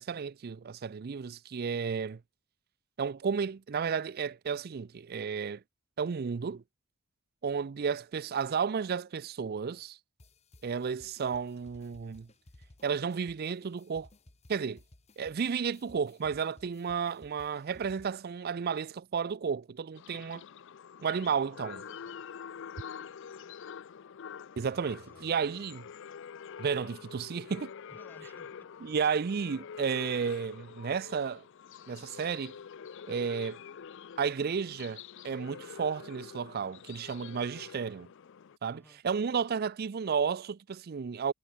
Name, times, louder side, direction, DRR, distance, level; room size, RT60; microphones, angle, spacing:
voice 1, 0.0-2.2 3.0-5.6 6.0-6.6 7.4-10.0 10.6-12.3 12.8-14.1 14.5-14.8 15.2-20.4 21.0-21.8 24.6-25.9 26.6-27.7 28.8-31.4 31.9-32.6 33.1-33.6 34.2-38.1 38.6-41.3, right 6 dB, 45° right, 0.4 m, -32 dB
sound 1, 10.2-18.4, left 1 dB, 30° left, 1.3 m, -59 dB
sound 2, 20.0-38.6, left 7 dB, 60° left, 0.4 m, -47 dB
voice 2, 21.8-22.3 24.9-25.3 27.9-28.7 38.7-39.0, left 1 dB, 10° left, 4.5 m, -58 dB
head